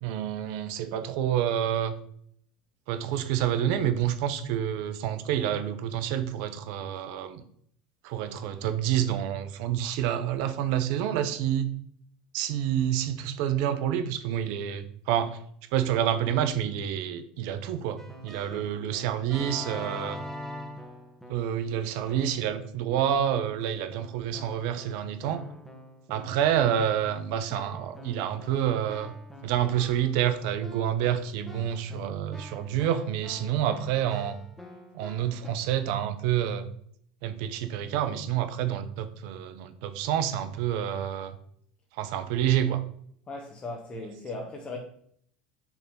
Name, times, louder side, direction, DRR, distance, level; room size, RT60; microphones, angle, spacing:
voice 1, 0.0-1.9 2.9-7.4 8.0-11.7 12.3-15.4 15.7-20.2 21.3-25.4 26.1-29.1 29.4-34.4 34.9-36.7 37.2-41.3 42.0-42.8, right 10 dB, 65° right, 0.7 m, -28 dB
Keyboard (musical), 18.0-21.6 22.1-22.6 23.0-35.5, left 1 dB, 5° left, 1.3 m, -45 dB
voice 2, 43.3-44.8, left 2 dB, 30° left, 1.2 m, -37 dB
6.2 x 3.5 x 5.3 m
hypercardioid pair, 80°, 4 cm